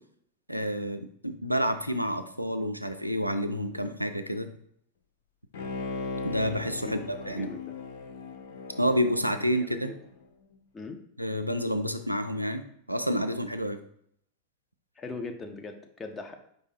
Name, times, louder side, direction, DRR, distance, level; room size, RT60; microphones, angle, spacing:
voice 1, 0.5-4.5 6.2-7.5 8.8-9.9 11.2-13.8, equal, 90° right, 7 dB, 0.3 m, -29 dB
Bowed string instrument, 5.5-10.1 10.5-10.6, left 4 dB, 55° left, 0.6 m, -38 dB
voice 2, 6.8-7.6 9.4-10.0 10.7-11.0 15.0-16.3, left 3 dB, 15° left, 5 dB, 0.6 m, -40 dB
4.8 x 2.6 x 4.1 m, 0.67 s
figure-of-eight pair, 90°, 0 cm